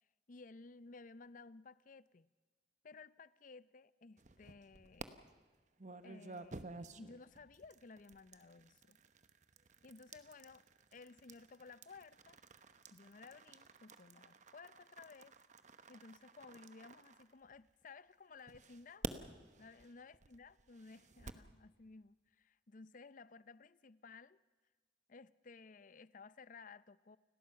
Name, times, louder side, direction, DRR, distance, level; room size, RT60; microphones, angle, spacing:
voice 1, 0.3-2.3 2.8-5.2 6.0-9.0 9.8-10.6 10.9-12.4 12.9-15.3 15.9-19.1 19.6-24.4 25.1-27.2, left 4 dB, 45° left, 0.6 m, -57 dB
sound 1, 4.2-5.1 5.8-17.8 18.5-21.5, right 3 dB, 40° right, 1.0 m, -52 dB
29.0 x 19.0 x 5.7 m
head